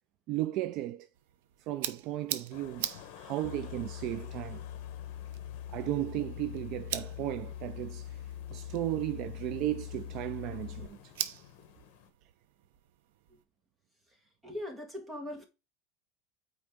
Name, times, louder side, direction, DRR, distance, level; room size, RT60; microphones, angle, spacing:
voice 1, 0.3-1.1 1.6-2.9 3.1-4.6 5.7-8.2 8.5-11.1, right 14 dB, 40° right, 0.4 m, -35 dB
sound 1, 1.1-13.4, right 11 dB, 80° right, 0.9 m, -44 dB
sound 2, 2.5-12.1, left 9 dB, 55° left, 1.8 m, -53 dB
sound 3, 3.4-10.9, left 11 dB, 70° left, 0.6 m, -43 dB
voice 2, 14.4-15.4, left 1 dB, 10° right, 2.0 m, -40 dB
9.0 x 3.5 x 5.1 m
supercardioid pair, 170°, 0 cm